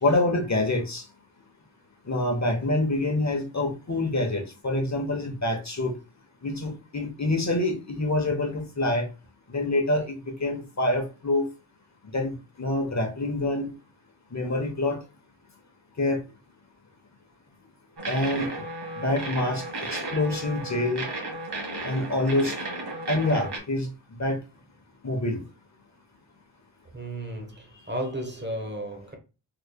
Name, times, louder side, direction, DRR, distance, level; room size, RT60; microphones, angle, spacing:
voice 1, 0.0-1.1 2.0-6.0 6.4-9.1 9.5-11.5 12.1-13.7 14.3-15.0 16.0-16.2 18.1-18.7 19.0-21.1 21.8-22.6 23.1-24.4 25.0-25.4, left 2 dB, 35° left, 1.0 m, -26 dB
sound 1, 18.0-23.6, right 2 dB, 60° right, 1.5 m, -34 dB
voice 2, 26.9-29.1, right 1 dB, 25° right, 1.0 m, -34 dB
3.8 x 3.1 x 2.2 m
wide cardioid pair, 65°, 45 cm